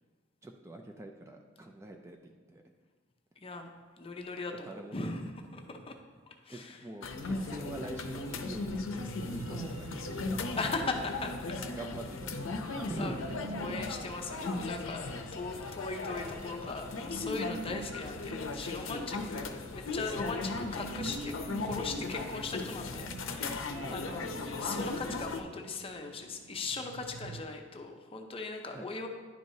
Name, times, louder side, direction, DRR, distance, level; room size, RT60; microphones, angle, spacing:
voice 1, 0.4-2.6 4.6-5.0 6.5-10.4 11.2-11.3 11.6-13.2 17.0-17.1 17.6-17.8 23.7-24.2 28.7-28.9, right 1 dB, 15° right, 3 dB, 0.3 m, -44 dB
voice 2, 3.4-5.9 6.3-6.8 9.5-9.8 10.6-11.6 12.7-13.2 13.5-21.3 21.6-24.3 24.6-29.1, left 3 dB, 30° left, 4 dB, 0.6 m, -39 dB
sound 1, 7.0-25.4, left 3 dB, 85° left, 0.6 m, -37 dB
sound 2, 7.5-27.4, right 3 dB, 85° right, 0.4 m, -48 dB
10.5 x 4.6 x 2.7 m, 1.4 s
head